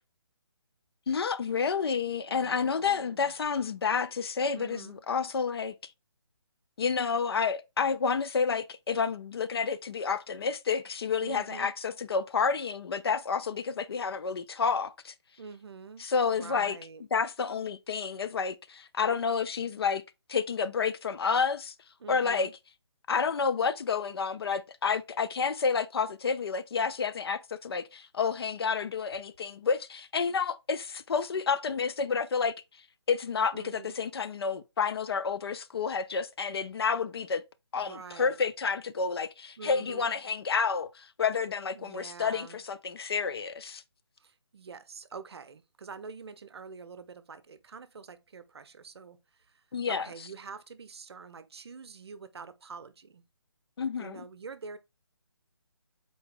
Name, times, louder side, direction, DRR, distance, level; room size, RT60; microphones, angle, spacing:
voice 1, 1.1-5.8 6.8-15.1 16.0-16.8 17.1-20.0 20.3-21.7 22.1-22.5 23.1-32.6 33.1-37.4 37.7-43.8 49.7-50.1 53.8-54.2, left 5 dB, 60° left, 0.4 m, -30 dB
voice 2, 2.3-3.3 4.5-5.0 11.2-11.7 15.4-17.0 22.0-22.5 33.5-33.9 37.7-38.4 39.6-40.1 41.7-42.6 44.2-53.2 54.0-54.8, right 5 dB, 65° right, 0.6 m, -46 dB
4.0 x 2.7 x 3.7 m
figure-of-eight pair, 155°, 15 cm